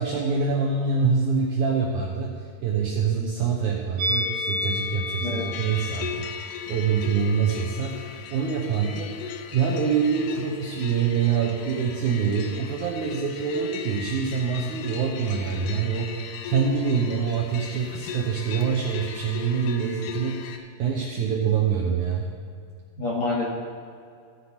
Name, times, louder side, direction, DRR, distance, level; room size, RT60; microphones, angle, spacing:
voice 1, 0.0-20.5 20.8-22.3, right 6 dB, 90° right, -1 dB, 1.7 m, -25 dB
Musical instrument, 4.0-9.2 9.5-9.7, left 2 dB, 70° right, 3.2 m, -33 dB
voice 2, 5.2-5.6 23.0-23.5, left 3 dB, 45° left, -5 dB, 3.0 m, -27 dB
sound 1, 5.5-20.6, left 7 dB, 85° left, 1.8 m, -38 dB
16.0 x 9.8 x 2.9 m, 2.3 s
omnidirectional pair, 4.6 m